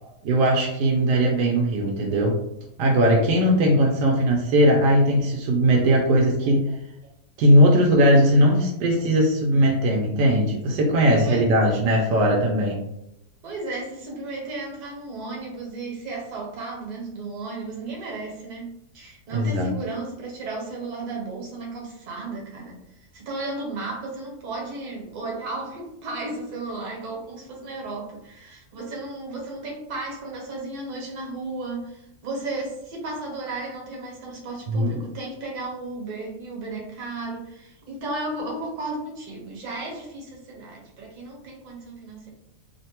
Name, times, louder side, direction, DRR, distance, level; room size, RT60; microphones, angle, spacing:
voice 1, 0.2-2.4 2.8-6.7 7.4-12.8 19.3-19.7 34.7-35.0, equal, 85° right, -1 dB, 1.2 m, -19 dB
voice 2, 6.4-6.7 11.2-11.8 13.4-42.3, right 2 dB, 70° right, -1 dB, 1.4 m, -34 dB
3.3 x 2.1 x 2.8 m, 0.81 s
omnidirectional pair, 1.8 m